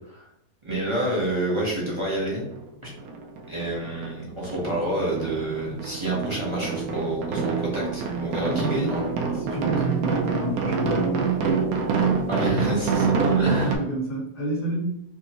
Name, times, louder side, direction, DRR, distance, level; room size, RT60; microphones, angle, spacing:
voice 1, 0.6-2.4 2.8-2.9 3.5-9.0 12.3-13.8, right 1 dB, 25° right, -5 dB, 0.8 m, -28 dB
sound 1, 2.5-2.6 3.0-4.2 4.4-13.8, right 5 dB, 70° right, 1.0 m, -26 dB
voice 2, 8.5-9.0 9.3-11.1 13.6-14.8, equal, 75° left, -8 dB, 2.1 m, -30 dB
5.1 x 2.1 x 2.8 m, 0.80 s
omnidirectional pair, 1.7 m